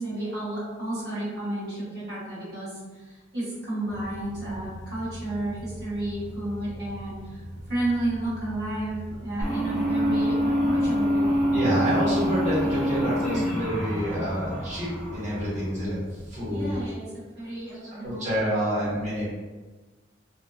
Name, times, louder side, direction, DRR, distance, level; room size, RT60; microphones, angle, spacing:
voice 1, 0.0-7.4 7.7-11.5 16.5-18.7, right 1 dB, 55° right, -11 dB, 1.4 m, -32 dB
sound 1, 3.9-16.9, right 1 dB, 20° left, 0.6 m, -41 dB
sound 2, 9.4-15.8, equal, ahead, 1.0 m, -26 dB
voice 2, 11.5-16.0 16.3-16.8 18.0-19.3, equal, 35° right, -10 dB, 1.1 m, -28 dB
2.6 x 2.1 x 2.3 m, 1.3 s
head